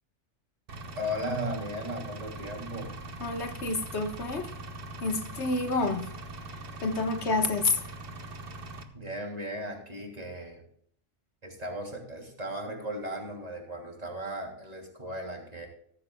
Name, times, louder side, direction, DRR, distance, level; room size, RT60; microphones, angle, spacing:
Engine, 0.7-8.8, right 2 dB, 50° right, 1.3 m, -42 dB
voice 1, 1.0-2.9 8.9-10.6 11.4-15.7, equal, 30° right, 3.0 m, -36 dB
voice 2, 3.2-4.5 5.0-6.1 6.5-7.8, left 3 dB, 65° left, 1.6 m, -29 dB
15.0 x 14.0 x 2.3 m
omnidirectional pair, 1.3 m